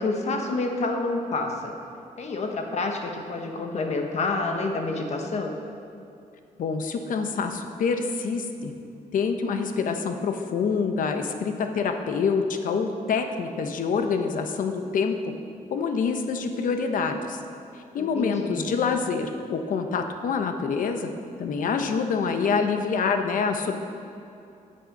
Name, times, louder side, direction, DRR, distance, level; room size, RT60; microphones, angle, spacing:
voice 1, 0.0-1.7 2.2-5.6 18.0-18.7, left 3 dB, 50° left, 3 dB, 1.2 m, -28 dB
voice 2, 6.6-8.7 9.1-15.2 15.7-17.4 17.9-21.1 21.4-23.7, left 5 dB, 70° left, 6 dB, 0.9 m, -26 dB
14.5 x 6.7 x 5.4 m, 2.7 s
wide cardioid pair, 150°, 14 cm